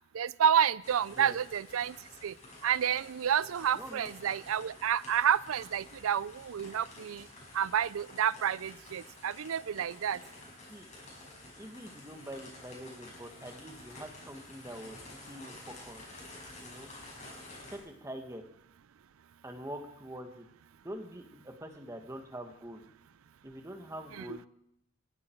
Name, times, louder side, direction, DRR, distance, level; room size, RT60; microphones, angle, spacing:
voice 1, 0.1-2.0 2.2-2.3 2.6-7.3 7.5-10.2 24.3-24.4, right 8 dB, 85° right, 20 dB, 0.4 m, -29 dB
sound 1, 0.8-17.8, left 2 dB, 35° left, 6.3 m, -51 dB
voice 2, 3.7-4.1 10.7-10.9 11.6-15.0 15.3-16.0 16.6-16.9 17.7-18.4 19.4-20.4 20.8-22.9 23.4-24.4, right 1 dB, 15° right, 5 dB, 1.5 m, -44 dB
21.0 x 11.5 x 4.5 m, 0.76 s
head